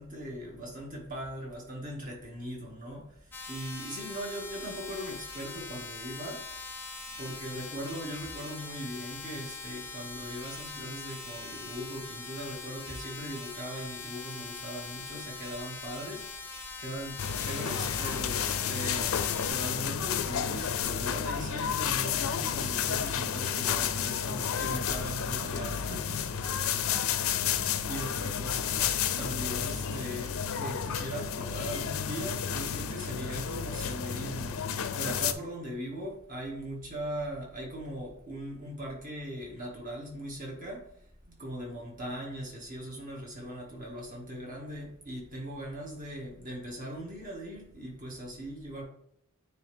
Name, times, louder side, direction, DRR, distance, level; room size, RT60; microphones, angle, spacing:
voice 1, 0.0-3.2 3.5-6.4 7.1-19.2 19.5-26.6 27.9-28.9 29.2-40.9 41.3-48.8, equal, 40° right, -2 dB, 1.9 m, -40 dB
sound 1, 3.3-19.5, left 4 dB, 10° left, 0.6 m, -42 dB
sound 2, 17.2-35.3, left 8 dB, 65° left, 0.5 m, -31 dB
9.1 x 3.2 x 3.5 m, 0.69 s
head